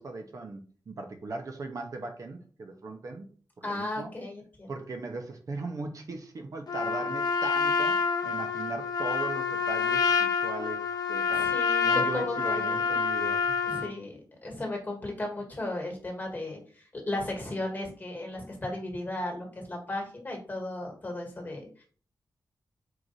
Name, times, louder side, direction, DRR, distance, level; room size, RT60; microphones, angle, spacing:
voice 1, 0.0-3.3 3.6-4.1 4.7-8.0 8.2-10.8 11.1-11.5 11.8-13.6, right 3 dB, 50° right, 4 dB, 0.6 m, -38 dB
voice 2, 3.6-4.7 11.3-13.0 13.6-21.8, left 2 dB, 25° left, 1 dB, 1.5 m, -35 dB
Trumpet, 6.7-13.9, left 5 dB, 60° left, 0.7 m, -27 dB
4.7 x 2.5 x 3.9 m, 0.42 s
wide cardioid pair, 155°, 8 cm